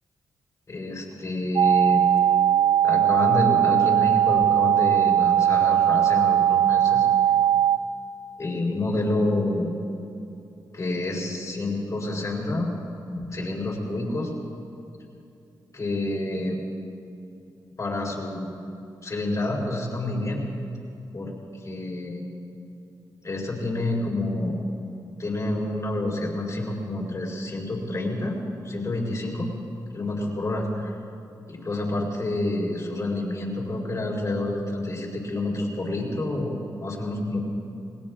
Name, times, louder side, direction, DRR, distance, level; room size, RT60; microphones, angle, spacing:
voice 1, 0.7-2.0 2.8-7.1 8.4-9.7 10.7-14.3 15.7-16.6 17.8-18.7 19.0-20.4 21.1-21.3 21.6-22.2 23.2-24.6 25.2-29.5 29.9-30.9 31.5-37.5, left 2 dB, 45° left, -3 dB, 4.2 m, -28 dB
sound 1, 1.6-7.8, right 10 dB, 75° right, 0.4 m, -19 dB
28.5 x 20.0 x 2.5 m, 2.7 s
cardioid pair, 80°, 8 cm